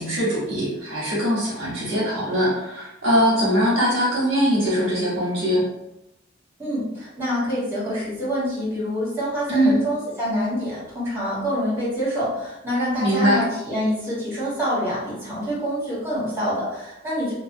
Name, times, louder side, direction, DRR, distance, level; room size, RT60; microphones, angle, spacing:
voice 1, 0.0-5.6 9.5-9.8 13.0-13.4, equal, 70° right, -6 dB, 1.0 m, -21 dB
voice 2, 6.6-17.3, equal, 10° right, -9 dB, 1.2 m, -26 dB
2.7 x 2.3 x 2.6 m, 0.90 s
head